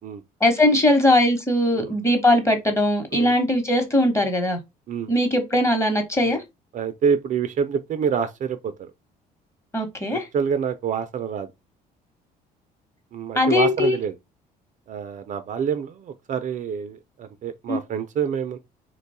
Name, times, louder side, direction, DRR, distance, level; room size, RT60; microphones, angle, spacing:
voice 1, 0.4-4.6 5.1-6.4 9.7-10.3 13.3-14.0 17.7-17.8, left 1 dB, 15° left, 1.1 m, -20 dB
voice 2, 6.7-8.9 10.1-11.5 13.1-14.1 14.9-18.6, right 7 dB, 50° right, 0.4 m, -27 dB
3.0 x 2.2 x 4.1 m
cardioid pair, 110°, 17 cm